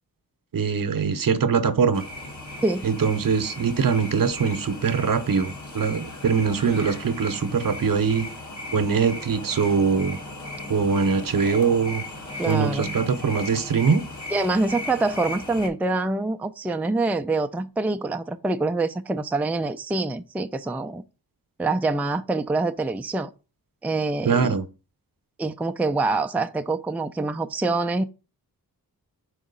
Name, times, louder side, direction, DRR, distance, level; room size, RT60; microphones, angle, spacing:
voice 1, 0.5-2.0 2.8-8.3 8.7-10.2 10.7-12.0 12.5-14.0 24.2-24.7, right 6 dB, 60° right, 0.9 m, -22 dB
sound 1, 1.9-15.7, left 1 dB, 50° left, 1.7 m, -37 dB
voice 2, 12.4-13.0 14.3-21.0 21.6-23.3 23.8-24.6 25.4-28.0, right 3 dB, 5° right, 0.4 m, -25 dB
4.9 x 3.6 x 5.3 m
cardioid pair, 55°, 38 cm